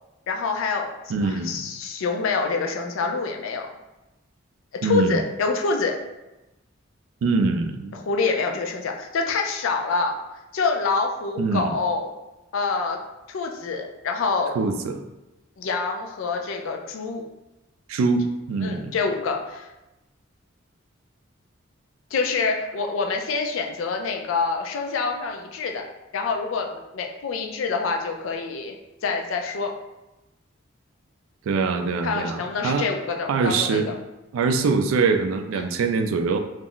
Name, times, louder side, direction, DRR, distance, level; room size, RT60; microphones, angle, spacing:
voice 1, 0.3-3.7 4.8-5.9 7.9-10.2 10.5-12.1 12.5-13.0 13.3-14.5 15.6-17.2 18.6-19.7 22.1-25.8 26.1-28.8 29.0-29.7 32.0-33.9 35.5-35.7, left 4 dB, 80° left, 3 dB, 0.4 m, -26 dB
voice 2, 1.1-1.6 4.8-5.2 7.2-7.9 11.4-11.7 14.6-15.0 17.9-19.0 31.5-32.9 33.3-33.9 34.3-36.4, right 4 dB, 85° right, 6 dB, 0.3 m, -23 dB
2.4 x 2.1 x 3.7 m, 1.0 s
head